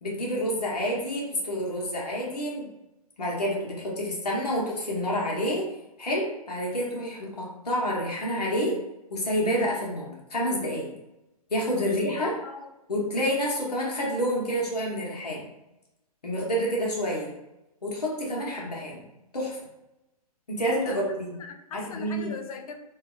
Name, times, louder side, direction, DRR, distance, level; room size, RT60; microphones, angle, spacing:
voice 1, 0.0-2.7 3.2-5.7 6.0-8.8 9.1-10.9 11.5-12.3 12.9-15.5 16.2-17.3 17.8-19.0 19.3-19.6 20.5-21.3 21.7-22.3, equal, 80° left, -3 dB, 1.0 m, -28 dB
voice 2, 11.8-12.7 18.4-18.7 20.8-21.0 21.4-22.7, left 5 dB, 65° left, 5 dB, 0.4 m, -40 dB
2.7 x 2.3 x 2.4 m, 0.94 s
figure-of-eight pair, 125°, 20 cm